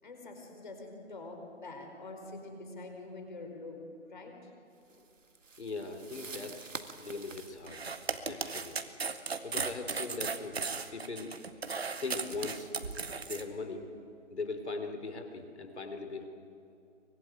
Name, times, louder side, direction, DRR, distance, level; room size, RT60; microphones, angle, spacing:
voice 1, 0.0-3.8 4.1-4.5, left 2 dB, 40° left, 3 dB, 4.8 m, -45 dB
sound 1, 4.9-9.8, right 4 dB, 90° right, 2.0 m, -49 dB
voice 2, 5.6-6.7 7.0-7.9 8.2-8.8 9.4-10.6 10.9-11.3 12.0-12.7 13.2-13.9 14.3-16.3, left 3 dB, 60° left, 6 dB, 3.6 m, -40 dB
sound 2, 7.7-13.4, right 4 dB, 55° right, 1.8 m, -36 dB
24.0 x 22.5 x 9.3 m, 2.7 s
hypercardioid pair, 180°, 37 cm